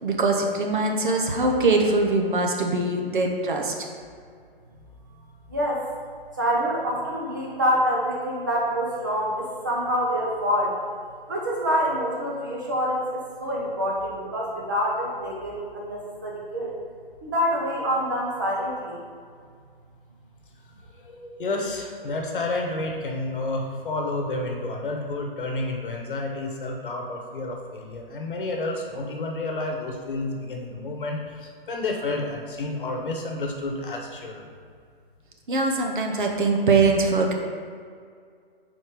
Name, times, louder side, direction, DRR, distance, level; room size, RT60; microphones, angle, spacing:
voice 1, 0.0-3.9 35.5-37.3, right 3 dB, 55° right, 2 dB, 0.9 m, -22 dB
voice 2, 5.5-5.9 6.4-10.7 11.3-16.7 17.2-19.0, equal, 20° right, -3 dB, 0.6 m, -26 dB
voice 3, 21.0-34.5, left 2 dB, 60° left, 2 dB, 1.1 m, -30 dB
5.0 x 4.3 x 4.7 m, 2.1 s
hypercardioid pair, 175°, 30 cm